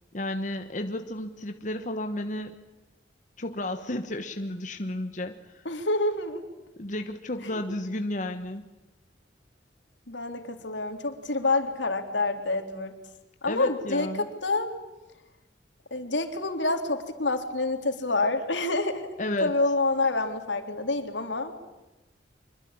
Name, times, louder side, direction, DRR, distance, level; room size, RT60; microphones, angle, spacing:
voice 1, 0.1-2.5 3.4-5.6 6.8-8.6 13.5-14.3 19.2-19.5, left 1 dB, 45° left, 7 dB, 1.3 m, -32 dB
voice 2, 5.6-6.4 7.5-7.6 10.1-12.9 13.4-14.7 15.9-19.1 19.4-21.5, left 2 dB, 85° left, 6 dB, 3.5 m, -27 dB
25.0 x 23.0 x 8.8 m, 1.1 s
head